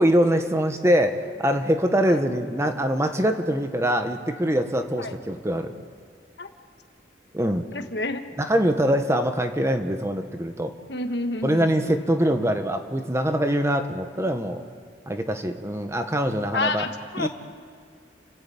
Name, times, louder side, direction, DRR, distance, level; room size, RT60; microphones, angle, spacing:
voice 1, 0.0-5.7 7.3-7.6 8.4-10.7 11.4-14.6 15.1-16.9 17.2-17.3, equal, 15° right, 6 dB, 1.2 m, -23 dB
voice 2, 7.7-8.2 10.9-12.1 16.5-17.3, left 2 dB, 70° left, 7 dB, 1.4 m, -29 dB
30.0 x 12.0 x 8.5 m, 2.2 s
head